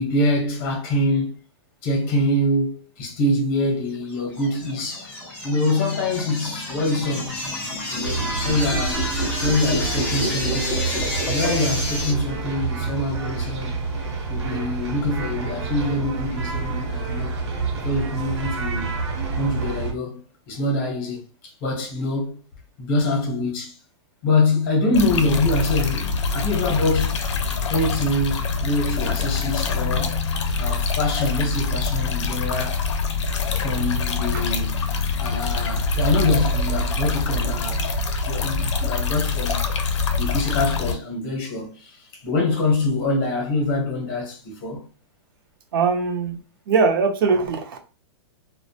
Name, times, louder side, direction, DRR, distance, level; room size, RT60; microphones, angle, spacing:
voice 1, 0.0-1.4 1.8-5.1 5.4-7.4 7.9-9.0 9.4-10.8 11.3-13.8 14.3-17.3 17.8-18.9 19.3-22.4 22.8-23.8 24.2-27.2 27.7-30.2 30.6-32.9 33.6-34.8 35.2-37.9 38.2-39.7 40.1-44.8, left 2 dB, 30° left, 0.7 m, -24 dB
sound 1, 4.1-12.1, left 1 dB, 10° left, 0.3 m, -29 dB
sound 2, 8.0-19.9, right 4 dB, 75° right, 0.8 m, -28 dB
sound 3, 24.9-40.9, left 4 dB, 80° left, 0.5 m, -24 dB
voice 2, 45.7-46.4 46.7-47.8, right 4 dB, 50° right, 0.5 m, -21 dB
2.4 x 2.1 x 2.6 m
supercardioid pair, 175°, 15 cm